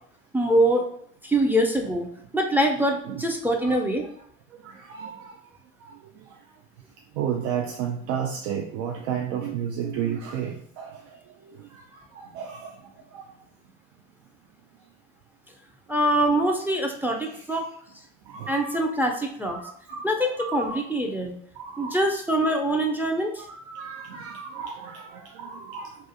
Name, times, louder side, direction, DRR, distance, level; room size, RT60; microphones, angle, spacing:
voice 1, 0.3-0.8 1.2-2.1 2.3-4.0 15.9-17.7 18.5-19.6 20.0-21.3 21.8-23.4, right 1 dB, 5° right, 1 dB, 0.4 m, -24 dB
voice 2, 4.6-5.3 6.2-6.3 7.2-11.2 11.4-12.8 13.1-13.2 18.3-18.8 19.5-20.1 20.4-20.8 21.6-22.0 23.4-26.0, right 8 dB, 75° right, 0 dB, 0.5 m, -33 dB
2.4 x 2.4 x 2.7 m, 0.65 s
hypercardioid pair, 65°, 40 cm